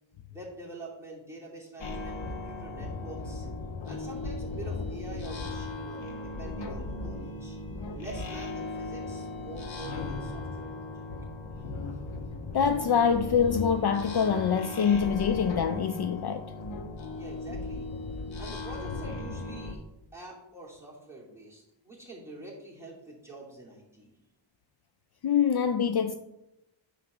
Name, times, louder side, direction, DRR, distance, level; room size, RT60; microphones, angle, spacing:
voice 1, 0.3-3.5 3.8-7.6 7.9-11.0 17.2-17.9 18.4-19.8 20.1-24.1, right 2 dB, 5° right, 2.4 m, -46 dB
sound 1, 1.8-19.7, left 2 dB, 80° left, 1.1 m, -37 dB
voice 2, 12.5-16.5 25.2-26.1, left 7 dB, 55° left, 0.5 m, -25 dB
9.5 x 3.4 x 6.2 m
wide cardioid pair, 135°, 46 cm